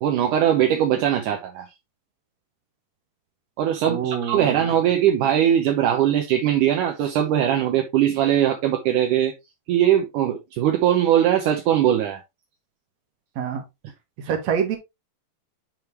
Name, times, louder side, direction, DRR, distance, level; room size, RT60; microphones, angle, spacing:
voice 1, 0.0-1.7 3.6-9.3 9.7-12.2, right 10 dB, 75° right, 2.0 m, -20 dB
voice 2, 3.9-4.7 13.4-13.6 14.2-14.8, right 7 dB, 55° right, 2.2 m, -26 dB
10.5 x 3.8 x 3.1 m
omnidirectional pair, 4.5 m